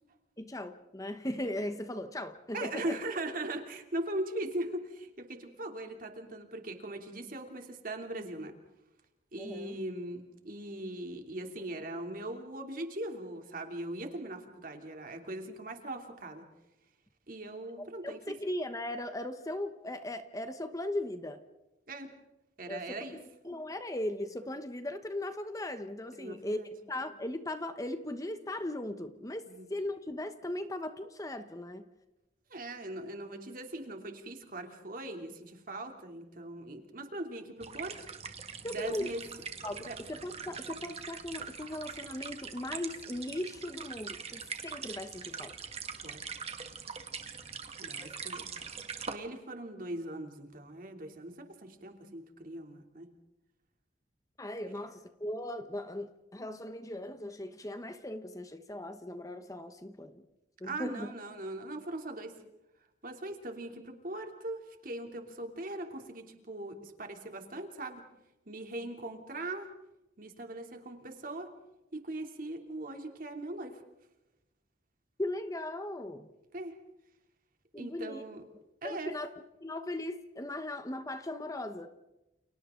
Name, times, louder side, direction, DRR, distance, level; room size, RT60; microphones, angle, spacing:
voice 1, 0.4-3.0 9.4-9.8 18.0-21.4 22.7-26.6 26.9-31.9 38.6-39.1 39.6-45.5 48.0-48.1 54.4-60.2 60.6-61.1 75.2-76.3 77.7-78.2 78.8-79.3 79.6-81.9, left 1 dB, 20° left, 1.2 m, -38 dB
voice 2, 2.5-8.5 9.3-16.4 17.3-18.2 21.9-22.1 22.6-23.2 26.1-26.7 29.5-29.6 32.5-38.0 38.7-39.2 39.8-40.0 46.0-46.2 47.8-48.5 49.1-53.1 60.6-62.3 63.0-68.0 68.5-69.7 70.2-71.5 72.0-73.8 76.5-76.8 77.8-78.4 78.8-79.1, right 1 dB, 50° right, 3.0 m, -40 dB
sound 1, 37.6-49.1, right 6 dB, 35° right, 1.9 m, -43 dB
30.0 x 30.0 x 3.9 m
head